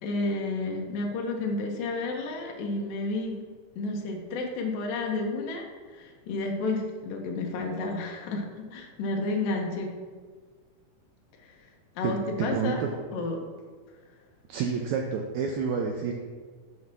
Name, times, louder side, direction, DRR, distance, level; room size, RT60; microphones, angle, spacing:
voice 1, 0.0-3.4 3.8-9.9 11.4-11.7 12.0-12.8 13.1-13.4 14.0-14.1, left 2 dB, 85° left, 2 dB, 2.5 m, -31 dB
voice 2, 12.4-12.9 14.5-16.1, right 6 dB, 85° right, 1 dB, 1.6 m, -29 dB
7.1 x 3.2 x 6.0 m, 1.5 s
omnidirectional pair, 3.9 m